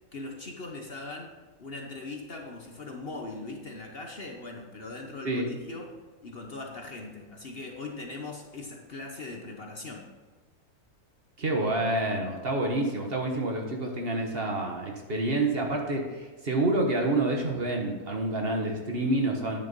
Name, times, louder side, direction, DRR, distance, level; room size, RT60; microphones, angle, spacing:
voice 1, 0.1-1.3 1.6-5.9 6.2-10.1, left 3 dB, 45° left, 1 dB, 1.1 m, -40 dB
voice 2, 11.4-19.6, right 2 dB, 40° right, 1 dB, 1.3 m, -28 dB
10.5 x 6.5 x 5.3 m, 1.3 s
omnidirectional pair, 1.6 m